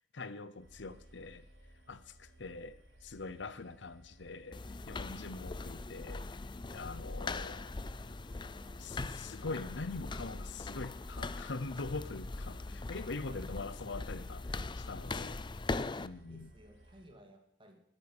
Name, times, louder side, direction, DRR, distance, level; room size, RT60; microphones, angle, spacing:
voice 1, 0.1-1.4 1.9-4.6 4.9-6.2 6.7-7.9 8.8-15.5 16.0-16.5, left 3 dB, 65° left, 15 dB, 0.8 m, -43 dB
sound 1, 0.6-17.1, right 1 dB, 80° right, 4.4 m, -59 dB
sound 2, 4.5-16.1, left 3 dB, 25° left, 0.5 m, -41 dB
voice 2, 13.0-14.2 15.9-17.9, equal, 25° right, 4 dB, 2.5 m, -60 dB
20.5 x 8.9 x 6.2 m, 0.72 s
head